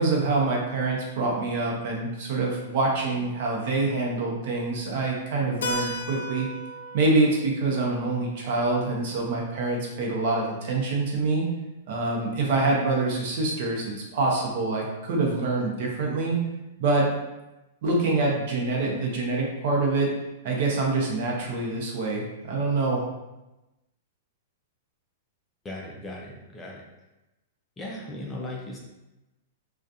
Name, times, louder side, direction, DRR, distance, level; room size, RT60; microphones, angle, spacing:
voice 1, 0.0-6.5 6.9-11.5 11.9-16.4 16.8-17.1 17.8-20.1 20.4-23.0, right 3 dB, 55° right, -2 dB, 0.7 m, -25 dB
Keyboard (musical), 5.6-10.1, equal, 80° left, 0.3 m, -37 dB
voice 2, 25.6-26.8 27.8-28.8, left 1 dB, 15° left, -2 dB, 0.4 m, -37 dB
2.6 x 2.3 x 2.4 m, 1.0 s
hypercardioid pair, 145°, 0 cm